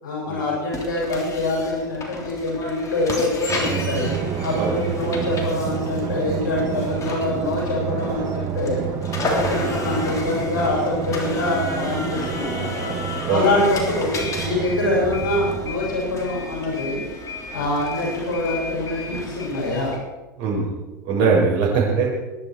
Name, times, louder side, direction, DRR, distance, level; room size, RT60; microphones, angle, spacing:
voice 1, 0.0-4.1 4.4-8.8 9.3-12.9 13.3-17.0 17.5-19.9, left 2 dB, 75° left, -4 dB, 7.0 m, -24 dB
sound 1, 0.7-20.0, left 3 dB, 30° left, 3.4 m, -32 dB
Drum, 3.5-16.6, right 8 dB, 35° right, 1.5 m, -29 dB
voice 2, 20.4-20.8 21.0-22.1, right 5 dB, 50° right, -2 dB, 6.4 m, -21 dB
22.0 x 11.0 x 4.7 m, 1.2 s
hypercardioid pair, 95°, 11 cm